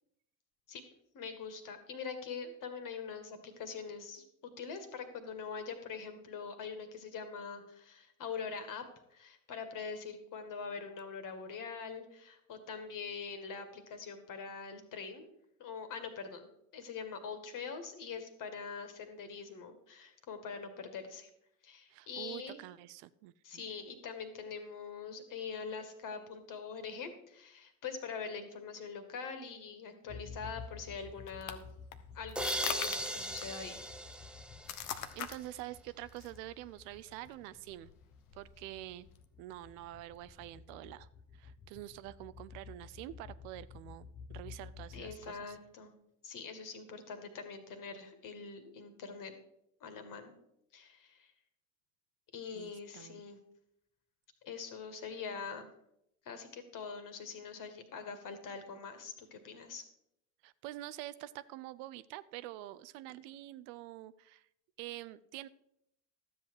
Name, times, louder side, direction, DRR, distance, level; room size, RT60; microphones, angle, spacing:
voice 1, 1.1-8.8 9.1-15.3 15.6-21.3 21.6-22.6 23.4-31.6 32.1-33.8 44.9-45.9 46.2-49.3 49.8-50.4 50.7-51.3 52.3-53.4 54.4-55.7 56.3-59.9, left 5 dB, 50° left, 8 dB, 2.0 m, -43 dB
voice 2, 21.9-23.6 34.8-37.9 38.3-39.1 39.4-41.1 41.3-45.6 52.5-53.2 60.4-64.5 64.8-65.5, right 15 dB, 65° right, 16 dB, 0.6 m, -47 dB
sound 1, 30.1-45.7, left 5 dB, 25° left, 1.0 m, -52 dB
sound 2, 30.7-39.2, left 10 dB, 80° left, 1.0 m, -45 dB
sound 3, 32.4-35.2, right 1 dB, ahead, 0.6 m, -38 dB
12.5 x 7.8 x 4.8 m, 0.79 s
hypercardioid pair, 70°, 42 cm